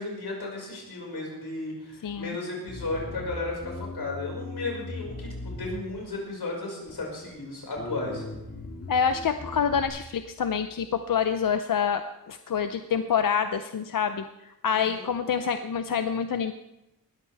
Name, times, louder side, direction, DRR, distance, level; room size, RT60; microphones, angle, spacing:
voice 1, 0.0-8.2 14.7-15.1, left 2 dB, 85° left, -1 dB, 5.5 m, -34 dB
voice 2, 2.0-2.4 8.9-16.5, left 7 dB, 60° left, 9 dB, 0.6 m, -27 dB
Bass guitar, 2.7-6.3 6.9-7.4 7.8-9.9, left 2 dB, 45° left, 5.2 m, -39 dB
19.5 x 14.0 x 3.5 m, 0.93 s
wide cardioid pair, 170°, 37 cm